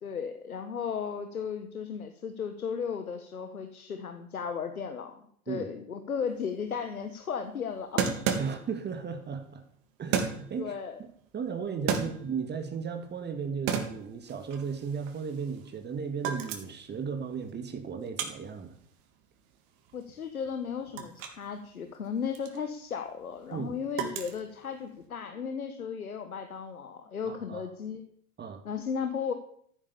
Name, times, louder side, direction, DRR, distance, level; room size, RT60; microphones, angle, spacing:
voice 1, 0.0-8.2 10.6-11.0 11.9-12.1 19.9-28.0 28.6-29.3, left 6 dB, 85° left, 8 dB, 1.6 m, -35 dB
sound 1, 6.3-6.4 6.6-6.7 8.0-8.9 10.1-10.6 11.6-12.6 13.0-13.3 13.7-15.8 16.1-16.9 17.3-21.5 21.7-25.0, right 7 dB, 50° right, 3.1 m, -34 dB
voice 2, 8.4-9.6 10.0-11.1 11.3-18.8 23.5-23.7 27.3-27.7 28.4-28.6, right 6 dB, 25° right, 6 dB, 2.3 m, -35 dB
14.5 x 10.0 x 7.1 m, 0.64 s
hypercardioid pair, 90°, 42 cm